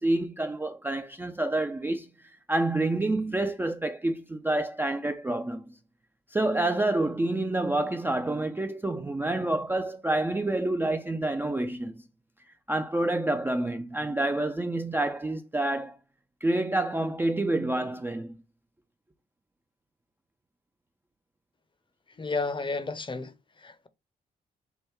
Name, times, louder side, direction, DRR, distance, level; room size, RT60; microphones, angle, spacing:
voice 1, 0.0-2.1 2.5-5.7 6.3-11.9 12.7-16.0 16.4-18.4, right 2 dB, 10° right, 0.4 m, -28 dB
voice 2, 22.2-23.3 23.6-23.9, left 3 dB, 30° left, 0.7 m, -31 dB
3.4 x 2.2 x 3.1 m
hypercardioid pair, 45°, 18 cm